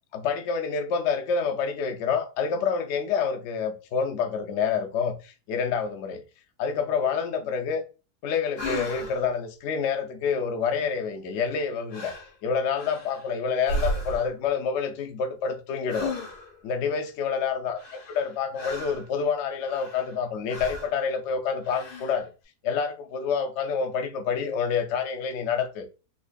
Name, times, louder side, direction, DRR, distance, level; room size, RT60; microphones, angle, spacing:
voice 1, 0.1-6.2 6.6-7.8 8.2-12.1 12.4-16.1 16.6-17.8 18.1-22.3 22.6-25.9, left 6 dB, 65° left, 0.7 m, -27 dB
sound 1, 8.6-9.3 11.4-11.6 11.9-12.3 12.7-13.3 13.6-14.4 15.9-16.6 17.8-19.1 19.6-20.2 20.5-21.0 21.6-22.2, left 1 dB, 85° left, 1.8 m, -34 dB
4.0 x 2.9 x 2.3 m
omnidirectional pair, 1.7 m